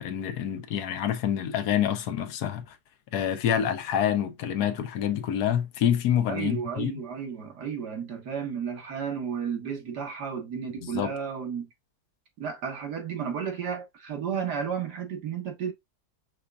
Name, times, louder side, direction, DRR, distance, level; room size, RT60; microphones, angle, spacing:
voice 1, 0.0-2.8 3.1-6.9 10.8-11.1, left 9 dB, 80° left, 1.3 m, -27 dB
voice 2, 6.3-11.7 12.4-15.7, right 7 dB, 90° right, 1.9 m, -33 dB
5.7 x 3.4 x 2.4 m
omnidirectional pair, 1.7 m